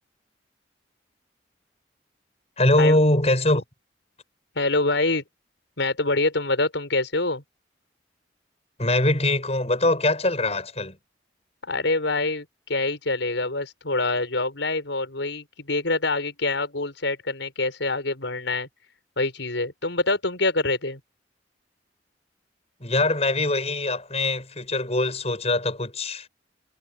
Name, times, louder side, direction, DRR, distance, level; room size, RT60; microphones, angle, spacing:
voice 1, 2.6-3.6 8.8-11.0 22.8-26.3, left 2 dB, 35° left, 7.5 m, -22 dB
voice 2, 4.6-5.2 5.8-7.4 11.7-18.7 19.2-21.0, left 2 dB, 90° left, 5.3 m, -25 dB
head